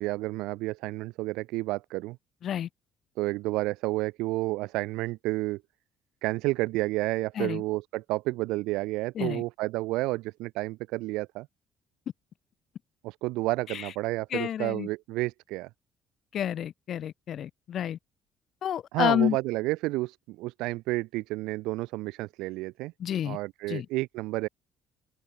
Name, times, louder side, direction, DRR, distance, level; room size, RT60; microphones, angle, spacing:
voice 1, 0.0-2.2 3.2-5.6 6.2-11.5 13.0-15.7 18.9-22.9 23.2-24.5, right 20 dB, 75° right, 1.0 m, -30 dB
voice 2, 14.3-14.9 16.3-18.0 18.6-19.4 23.0-23.4 23.7-23.9, left 10 dB, 60° left, 1.2 m, -29 dB
hypercardioid pair, 60°, 0 cm